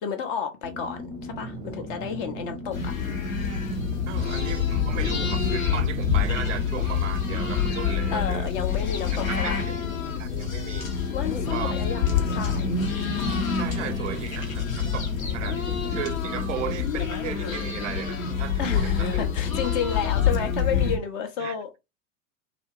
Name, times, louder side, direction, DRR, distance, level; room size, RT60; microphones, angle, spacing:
voice 1, 0.0-2.9 8.1-9.6 11.1-12.0 12.3-12.7 18.6-21.7, left 7 dB, 40° left, 0.6 m, -31 dB
sound 1, 0.6-16.8, left 1 dB, 10° right, 0.6 m, -38 dB
sound 2, 2.7-21.0, left 6 dB, 75° left, 0.8 m, -27 dB
voice 2, 4.1-8.5 9.3-9.6 10.2-11.0 11.5-11.7 13.5-19.1 21.4-21.6, right 11 dB, 60° right, 0.5 m, -36 dB
2.5 x 2.5 x 2.9 m
figure-of-eight pair, 85°, 41 cm